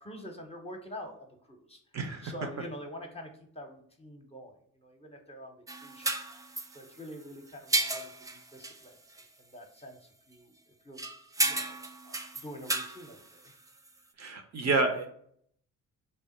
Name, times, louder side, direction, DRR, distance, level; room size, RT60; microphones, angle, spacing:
voice 1, 0.0-1.8 2.2-5.6 5.8-6.2 6.5-9.0 9.4-10.5 10.8-11.1 11.4-13.5, equal, 15° left, 3 dB, 0.8 m, -46 dB
voice 2, 1.9-2.3 14.2-15.1, right 3 dB, 45° right, 5 dB, 0.6 m, -29 dB
sound 1, 5.7-7.2 7.5-8.9 9.1-9.3 11.0-13.9, right 2 dB, 10° right, 0.3 m, -33 dB
3.3 x 2.0 x 4.2 m, 0.64 s
hypercardioid pair, 50°, 38 cm